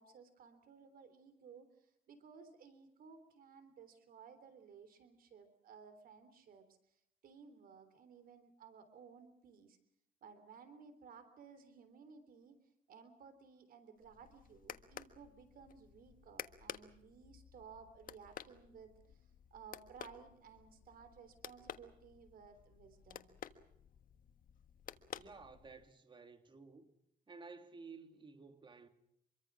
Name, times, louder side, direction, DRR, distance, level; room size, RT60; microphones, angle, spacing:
voice 1, 0.0-9.8 10.2-12.6 12.9-23.3, right 6 dB, 65° right, 3.6 m, -58 dB
sound 1, 14.0-25.9, left 9 dB, 60° left, 1.5 m, -53 dB
voice 2, 25.1-26.9 27.3-28.9, right 4 dB, 30° right, 3.0 m, -54 dB
26.5 x 23.5 x 6.3 m
cardioid pair, 135°, 16 cm